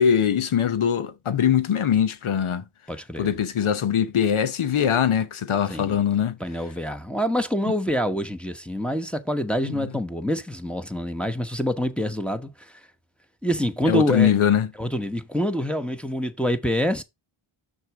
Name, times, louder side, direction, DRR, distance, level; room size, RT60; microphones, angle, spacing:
voice 1, 0.0-2.6 3.2-6.4 7.6-7.7 9.6-9.9 13.9-14.7, left 8 dB, 90° left, 0.9 m, -22 dB
voice 2, 2.9-3.3 5.7-6.0 6.4-12.8 13.4-14.3 14.8-17.0, equal, ahead, 1.0 m, -26 dB
6.5 x 4.5 x 4.9 m
cardioid pair, 55°, 48 cm